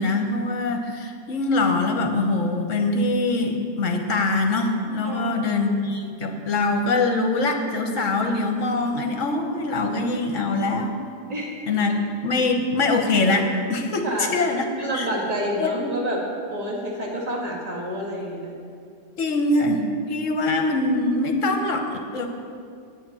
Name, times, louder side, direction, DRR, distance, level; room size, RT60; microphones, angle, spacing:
voice 1, 0.0-10.9 11.7-14.0 14.3-14.6 14.9-15.1 15.6-15.9 19.2-19.8 20.1-22.3, left 2 dB, 55° left, 4 dB, 1.4 m, -23 dB
voice 2, 5.0-5.4 11.3-11.5 14.0-18.5, equal, 25° right, -2 dB, 1.8 m, -29 dB
8.7 x 7.5 x 8.7 m, 2.3 s
omnidirectional pair, 1.7 m